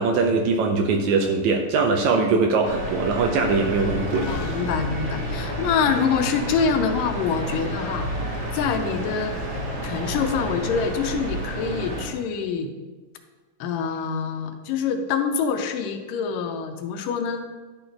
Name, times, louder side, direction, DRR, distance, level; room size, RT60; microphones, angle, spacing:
voice 1, 0.0-4.3, right 4 dB, 80° right, 3 dB, 1.7 m, -21 dB
sound 1, 2.6-12.1, right 1 dB, 50° right, 2.8 m, -31 dB
sound 2, 4.1-10.9, left 3 dB, 70° left, 2.1 m, -37 dB
voice 2, 4.3-8.1 8.5-9.4 9.8-12.7 13.6-17.5, left 6 dB, 90° left, 6 dB, 2.3 m, -25 dB
11.5 x 4.0 x 4.6 m, 1.3 s
omnidirectional pair, 3.7 m